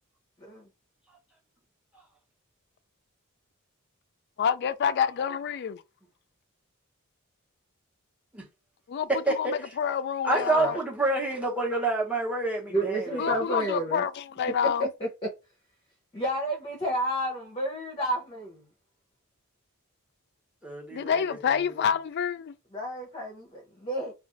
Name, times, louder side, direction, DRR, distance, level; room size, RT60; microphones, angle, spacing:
voice 1, 4.4-5.8 8.9-9.1 9.4-10.8 13.2-14.9 20.9-22.5, left 7 dB, 50° left, 0.3 m, -28 dB
voice 2, 9.1-9.5 10.2-13.4 20.6-21.4, right 2 dB, 5° right, 0.9 m, -28 dB
voice 3, 10.3-10.8 12.7-14.1 14.6-15.3 16.1-18.6 22.7-24.1, right 1 dB, 25° left, 0.7 m, -31 dB
2.4 x 2.4 x 3.8 m
head